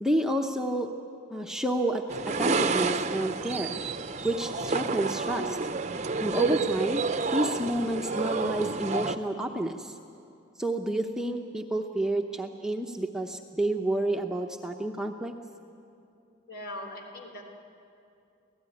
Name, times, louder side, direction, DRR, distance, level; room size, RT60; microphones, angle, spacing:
voice 1, 0.0-0.9 1.3-3.8 4.2-5.6 6.2-7.0 7.3-10.0 10.6-15.3, right 1 dB, 5° right, 2 dB, 0.8 m, -30 dB
sound 1, 2.1-9.2, right 4 dB, 35° right, 0.7 m, -29 dB
voice 2, 16.5-17.6, left 1 dB, 55° left, 2 dB, 3.7 m, -40 dB
26.5 x 17.0 x 9.9 m, 2.6 s
head